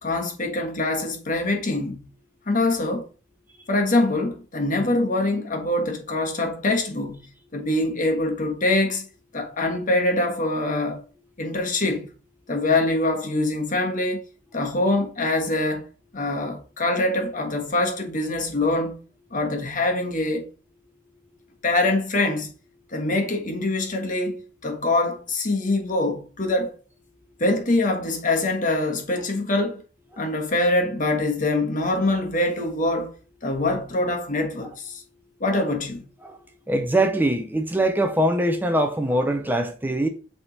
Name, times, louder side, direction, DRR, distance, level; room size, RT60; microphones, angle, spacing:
voice 1, 0.0-2.1 2.5-3.0 3.7-7.2 7.5-9.1 9.3-11.0 11.4-12.1 12.5-14.2 14.5-15.9 16.1-19.0 19.3-20.5 21.6-22.5 22.9-26.7 27.4-29.8 30.2-33.1 33.4-35.0 35.4-36.1, left 2 dB, 45° left, 1.4 m, -24 dB
voice 2, 36.7-40.1, right 1 dB, 10° right, 0.6 m, -22 dB
8.5 x 3.5 x 4.1 m
head